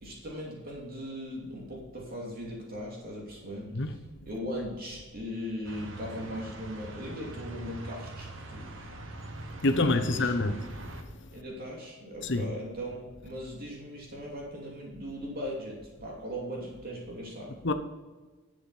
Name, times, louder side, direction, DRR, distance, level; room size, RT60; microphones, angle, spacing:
voice 1, 0.0-8.9 9.6-10.3 11.3-17.6, equal, 50° right, 2.7 m, -39 dB
sound 1, 5.6-11.0, right 2 dB, 70° right, 1.5 m, -42 dB
voice 2, 9.6-10.6 12.2-12.4 17.6-17.7, left 2 dB, 65° left, 1.0 m, -26 dB
11.5 x 8.0 x 4.3 m
head